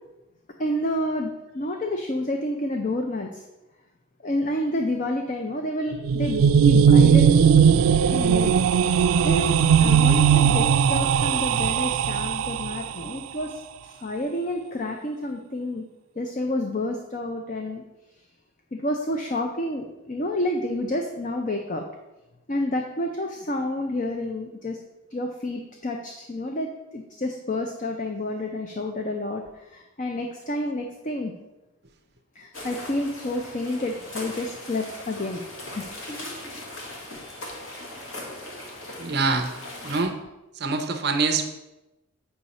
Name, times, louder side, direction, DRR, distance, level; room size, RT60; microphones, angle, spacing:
voice 1, 0.6-3.4 4.2-7.5 8.1-8.6 9.2-15.8 16.2-17.8 18.7-21.8 22.5-24.8 25.1-31.3 32.3-35.4 35.8-36.0 37.2-37.4, left 1 dB, 40° left, 3 dB, 0.6 m, -29 dB
sound 1, 5.9-12.9, right 7 dB, 85° right, 0.3 m, -18 dB
sound 2, 32.5-40.0, left 1 dB, 80° left, 1.6 m, -39 dB
voice 2, 39.0-39.5 39.8-40.2 40.5-41.5, right 4 dB, 50° right, 5 dB, 0.6 m, -24 dB
7.9 x 5.9 x 4.1 m, 0.99 s
head